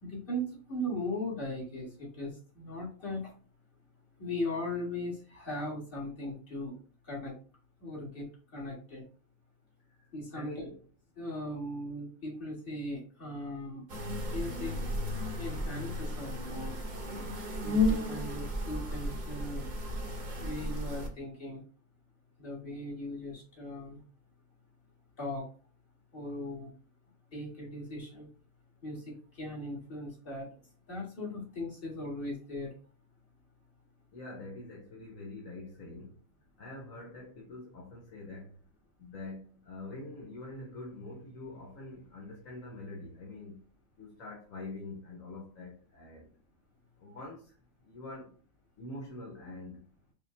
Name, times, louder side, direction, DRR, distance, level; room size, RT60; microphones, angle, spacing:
voice 1, 0.0-1.9 2.2-2.3 2.6-3.3 4.2-6.7 7.1-7.3 7.8-8.2 8.5-9.0 10.1-10.6 11.2-13.8 14.3-14.7 15.4-16.8 17.6-19.6 20.4-21.6 22.4-24.0 25.2-25.4 26.1-26.7 27.3-28.3 28.8-29.0 29.4-30.5 30.9-32.7, left 1 dB, 40° left, 2.0 m, -38 dB
voice 2, 9.9-10.8 34.1-36.2 36.6-38.6 39.0-43.6 44.0-46.3 47.0-47.6 47.8-48.3 48.8-49.8, left 2 dB, 75° left, 1.3 m, -45 dB
sound 1, 13.9-21.1, left 2 dB, 40° right, 0.8 m, -34 dB
5.5 x 2.3 x 3.2 m
omnidirectional pair, 1.4 m